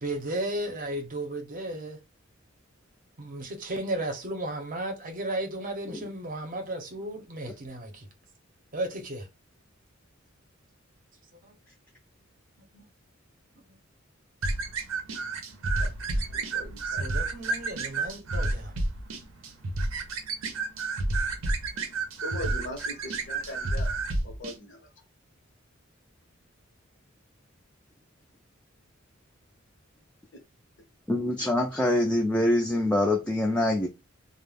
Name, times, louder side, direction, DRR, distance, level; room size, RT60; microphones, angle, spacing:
voice 1, 0.0-2.0 3.2-8.1 8.7-9.3 11.4-11.5 12.7-12.9 16.6-18.7, right 1 dB, 45° right, 0.7 m, -34 dB
sound 1, 14.4-24.6, right 2 dB, 90° right, 0.6 m, -30 dB
voice 2, 16.3-17.0 22.2-24.0 24.2-24.8, left 1 dB, 65° left, 0.7 m, -40 dB
voice 3, 31.1-33.9, left 1 dB, 5° left, 0.3 m, -24 dB
2.3 x 2.0 x 3.3 m
head